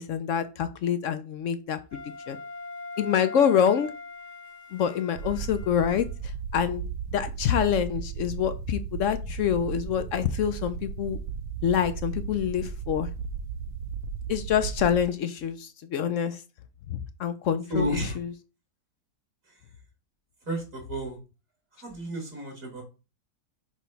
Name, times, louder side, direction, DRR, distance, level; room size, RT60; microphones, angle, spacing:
voice 1, 0.0-2.0 2.3-2.4 3.0-3.9 4.7-6.8 7.1-11.2 11.6-13.1 14.3-16.4 16.9-18.3, left 8 dB, 70° left, 11 dB, 0.7 m, -26 dB
Wind instrument woodwind instrument, 1.9-6.2, left 3 dB, 15° right, 0.7 m, -41 dB
sound 1, 5.1-15.0, right 6 dB, 70° right, 1.0 m, -35 dB
voice 2, 17.7-18.2 20.5-21.2 21.8-22.8, right 1 dB, 55° right, 1 dB, 2.3 m, -31 dB
6.0 x 3.0 x 5.6 m, 0.31 s
omnidirectional pair, 1.7 m